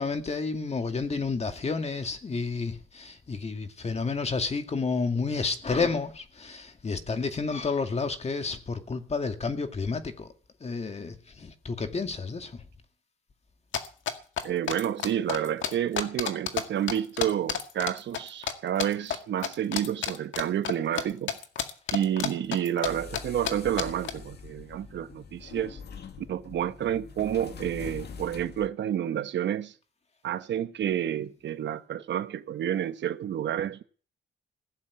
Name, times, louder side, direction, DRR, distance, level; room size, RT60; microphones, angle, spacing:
voice 1, 0.0-10.3 10.6-12.6, left 4 dB, 35° left, 2.1 m, -30 dB
sound 1, 13.7-16.6 16.9-18.5 18.8-19.2 19.4-21.0 21.3-22.9 23.1-23.2 23.5-23.6 23.8-24.1, left 8 dB, 70° left, 2.0 m, -30 dB
voice 2, 14.4-21.3 21.9-25.8 26.2-29.7 30.2-33.8, right 10 dB, 65° right, 1.1 m, -29 dB
sound 2, 22.8-28.7, left 6 dB, 55° left, 2.1 m, -44 dB
16.5 x 7.3 x 9.5 m
cardioid pair, 90°, 20 cm